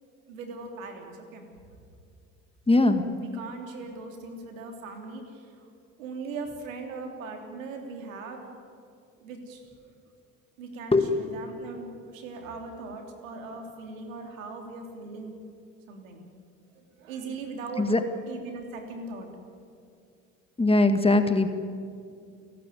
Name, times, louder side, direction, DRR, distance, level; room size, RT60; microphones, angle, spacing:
voice 1, 0.3-1.4 3.2-5.6 6.0-8.5 9.2-9.9 10.6-15.3 15.9-16.2 16.7-17.9 18.3-19.3, right 3 dB, 85° right, 4 dB, 3.2 m, -39 dB
voice 2, 2.7-3.0 10.9-11.0 17.8-18.0 20.6-21.5, left 2 dB, 15° left, 8 dB, 1.9 m, -20 dB
30.0 x 12.0 x 9.3 m, 2.3 s
hypercardioid pair, 70°, 39 cm